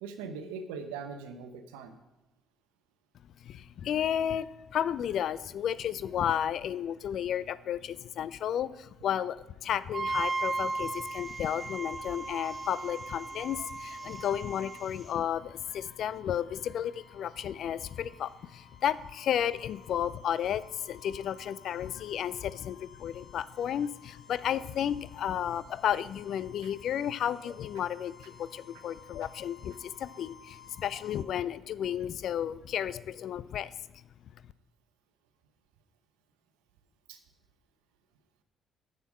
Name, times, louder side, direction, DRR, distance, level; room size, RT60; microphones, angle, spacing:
voice 1, 0.0-1.9 37.1-37.2, right 5 dB, 80° right, 7 dB, 0.8 m, -40 dB
voice 2, 3.4-33.7, left 9 dB, 60° left, 17 dB, 0.3 m, -33 dB
Wind instrument woodwind instrument, 9.9-14.9, right 3 dB, 35° right, 0.5 m, -36 dB
sound 1, 10.1-15.1, right 1 dB, 5° right, 2.3 m, -55 dB
sound 2, 13.9-31.2, left 7 dB, 40° left, 1.3 m, -56 dB
7.0 x 6.5 x 7.2 m, 1.0 s
hypercardioid pair, 50°, 0 cm